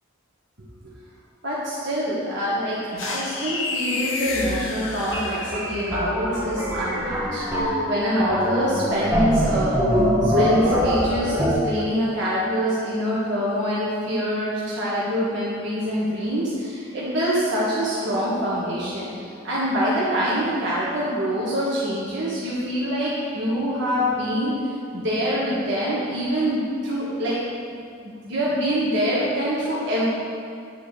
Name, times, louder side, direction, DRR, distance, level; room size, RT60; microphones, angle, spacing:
voice 1, 1.4-9.9 10.2-24.6 24.9-27.4 27.7-27.8 28.0-30.1, equal, 55° right, -8 dB, 1.6 m, -25 dB
sound 1, 3.0-5.9, left 3 dB, 60° left, 0.8 m, -30 dB
sound 2, 5.1-11.5, equal, 10° right, 1.1 m, -23 dB
9.2 x 4.5 x 6.7 m, 2.4 s
head